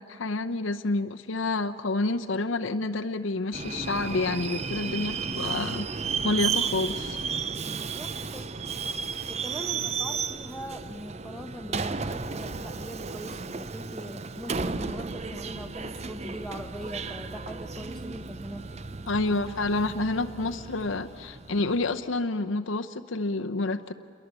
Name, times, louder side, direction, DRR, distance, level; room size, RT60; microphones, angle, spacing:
voice 1, 0.0-5.9 6.2-7.3 19.1-23.9, left 2 dB, 75° left, 7 dB, 0.8 m, -29 dB
Subway metro underground, 3.5-22.0, right 5 dB, 30° right, 0.6 m, -34 dB
voice 2, 7.6-8.5 9.3-18.8, equal, ahead, 1 dB, 1.0 m, -41 dB
28.5 x 22.5 x 8.2 m, 2.4 s
head